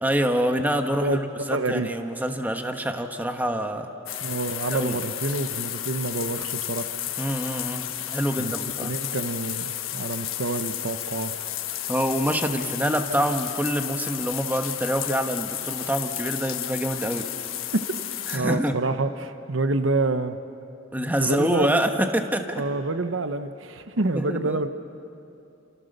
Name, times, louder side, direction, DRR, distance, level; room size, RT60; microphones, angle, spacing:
voice 1, 0.0-3.9 4.7-5.0 7.2-8.9 11.9-17.3 18.3-18.8 20.9-22.6 24.1-24.6, equal, 10° right, 5 dB, 1.3 m, -26 dB
voice 2, 1.5-1.9 4.2-6.9 8.4-11.5 17.7-17.9 18.3-20.4 21.2-21.7 22.6-24.7, right 2 dB, 65° right, 10 dB, 1.0 m, -27 dB
sound 1, 4.1-18.4, left 12 dB, 90° left, 1.5 m, -32 dB
29.5 x 27.5 x 6.7 m, 2.8 s
head